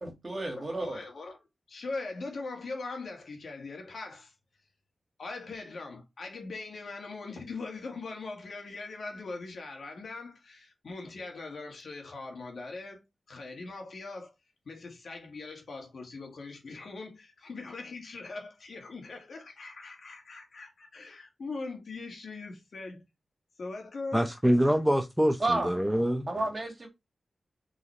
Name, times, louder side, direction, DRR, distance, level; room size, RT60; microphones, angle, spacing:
voice 1, 0.0-1.0 25.4-25.7 26.3-26.9, right 2 dB, 35° right, 2.0 m, -31 dB
voice 2, 0.6-1.4 1.7-4.3 5.2-14.3 14.7-23.0 23.6-24.3, left 3 dB, 70° left, 1.8 m, -41 dB
voice 3, 24.1-26.3, equal, 5° right, 0.5 m, -25 dB
4.0 x 4.0 x 3.1 m
cardioid pair, 60°, 0 cm